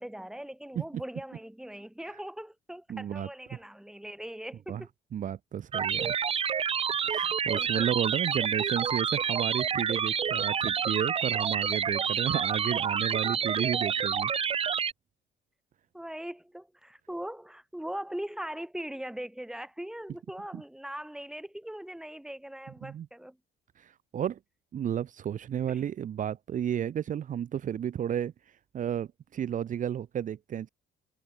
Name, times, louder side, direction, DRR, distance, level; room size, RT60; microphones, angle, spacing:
voice 1, 0.0-4.9 7.5-7.9 13.6-13.8 15.9-23.4 25.7-25.9, right 1 dB, 5° right, 6.4 m, -40 dB
voice 2, 2.9-3.3 4.7-4.8 5.1-6.2 7.0-14.3 22.8-23.1 23.8-24.4 24.7-28.3 28.7-30.7, right 9 dB, 50° right, 2.2 m, -32 dB
sound 1, 5.7-14.9, right 7 dB, 35° right, 0.9 m, -28 dB
cardioid pair, 110°, 17 cm